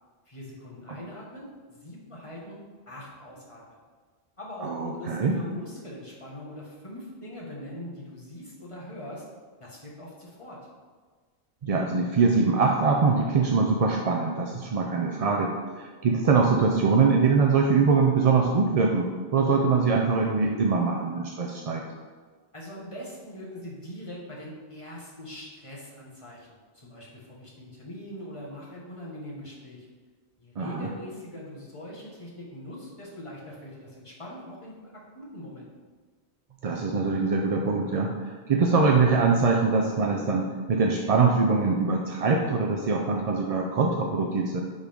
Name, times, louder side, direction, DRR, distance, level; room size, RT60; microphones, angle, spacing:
voice 1, 0.2-2.6 2.9-3.8 4.4-9.2 9.6-10.6 22.5-26.5 26.7-29.9 30.4-35.7, left 1 dB, 30° left, -5 dB, 1.5 m, -42 dB
voice 2, 4.6-5.4 11.6-21.8 30.6-30.9 36.6-44.6, right 4 dB, 50° right, 1 dB, 0.5 m, -23 dB
10.5 x 3.7 x 3.5 m, 1.5 s
omnidirectional pair, 1.1 m